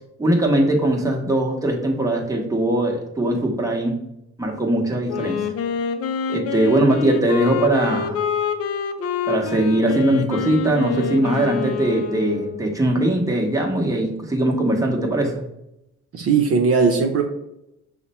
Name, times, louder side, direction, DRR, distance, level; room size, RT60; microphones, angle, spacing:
voice 1, 0.2-4.0 4.4-5.5 6.3-8.2 9.3-15.4, right 1 dB, 10° right, 0 dB, 1.0 m, -20 dB
Wind instrument woodwind instrument, 5.1-12.8, left 7 dB, 50° left, 0.5 m, -26 dB
voice 2, 16.1-17.2, right 5 dB, 50° right, 2 dB, 0.6 m, -18 dB
5.7 x 2.1 x 4.1 m, 0.84 s
cardioid pair, 90°, 30 cm